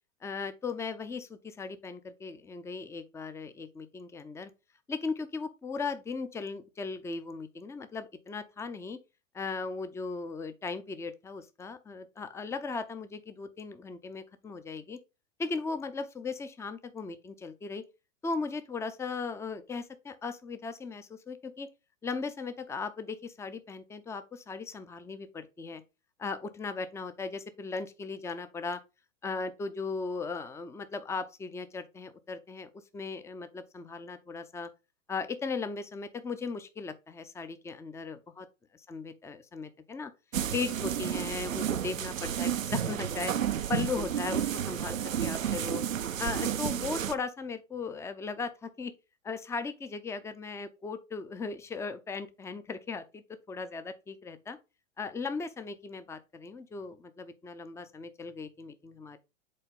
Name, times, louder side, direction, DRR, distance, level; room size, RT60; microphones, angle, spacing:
voice 1, 0.2-4.5 4.9-9.0 9.3-15.0 15.4-17.8 18.2-21.7 22.0-25.8 26.2-28.8 29.2-34.7 35.1-38.4 38.9-40.1 40.5-43.3 43.7-45.8 46.2-48.9 49.2-53.2 53.5-54.6 55.0-59.2, left 4 dB, 5° left, 0.6 m, -37 dB
sound 1, 40.3-47.1, right 9 dB, 85° right, 0.7 m, -31 dB
7.6 x 4.3 x 3.7 m
hypercardioid pair, 100°, 38 cm